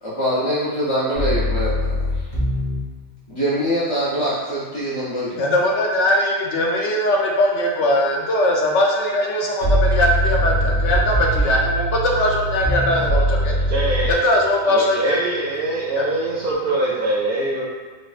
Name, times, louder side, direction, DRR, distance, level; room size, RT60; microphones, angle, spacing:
voice 1, 0.0-2.3 3.3-5.4, equal, 35° left, -11 dB, 0.5 m, -24 dB
sound 1, 1.2-2.8 9.6-14.1, equal, 50° left, 1.7 m, -21 dB
voice 2, 5.4-13.5 14.1-15.4 16.0-16.1, left 1 dB, 70° left, -1 dB, 0.9 m, -20 dB
Bass guitar, 10.3-16.6, left 4 dB, 5° right, 0.6 m, -41 dB
voice 3, 13.7-14.2 14.7-17.6, right 2 dB, 60° right, -5 dB, 0.7 m, -23 dB
4.3 x 2.3 x 2.4 m, 1.5 s
omnidirectional pair, 1.3 m